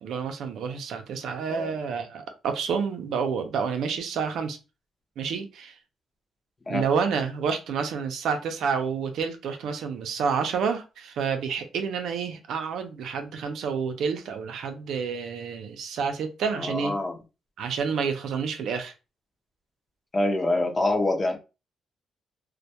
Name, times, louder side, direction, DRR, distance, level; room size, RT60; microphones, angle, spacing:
voice 1, 0.0-4.6 5.2-5.8 6.7-16.9 17.6-18.9, right 6 dB, 85° right, 0.5 m, -29 dB
voice 2, 16.6-17.1 20.1-21.4, left 2 dB, 25° left, 0.5 m, -25 dB
2.1 x 2.1 x 2.7 m
cardioid pair, 135°, 0 cm